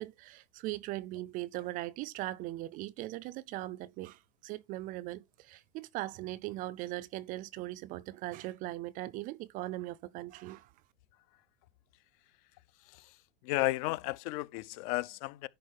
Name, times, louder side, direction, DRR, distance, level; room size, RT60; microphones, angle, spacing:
voice 1, 0.0-10.7, right 17 dB, 30° right, 0.4 m, -39 dB
voice 2, 13.4-15.5, left 18 dB, 40° left, 0.4 m, -33 dB
10.5 x 4.0 x 4.6 m
supercardioid pair, 135°, 29 cm